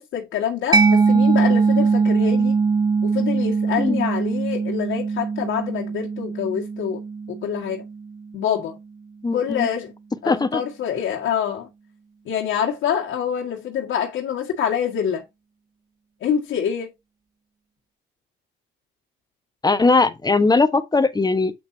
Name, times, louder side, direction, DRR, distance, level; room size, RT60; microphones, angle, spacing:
voice 1, 0.0-2.6 3.0-7.0 7.4-7.9 8.3-8.8 9.3-9.9 10.2-11.7 12.3-15.2 16.2-16.9, left 8 dB, 80° left, 1.7 m, -26 dB
Mallet percussion, 0.7-8.1, right 4 dB, 20° right, 0.5 m, -21 dB
voice 2, 9.2-9.7 10.3-10.6 19.6-21.5, left 3 dB, 20° left, 1.2 m, -19 dB
8.1 x 6.7 x 2.7 m
cardioid pair, 90°, 20 cm